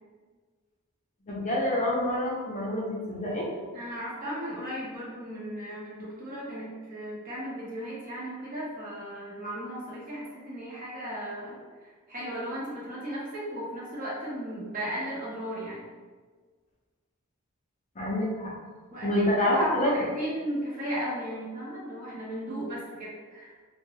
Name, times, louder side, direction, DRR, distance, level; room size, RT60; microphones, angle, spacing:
voice 1, 1.3-3.5 18.0-18.5 19.0-19.9, left 1 dB, 30° left, -4 dB, 0.5 m, -27 dB
voice 2, 3.7-15.9 18.9-23.5, equal, 35° right, -7 dB, 0.8 m, -35 dB
2.4 x 2.2 x 3.1 m, 1.5 s
head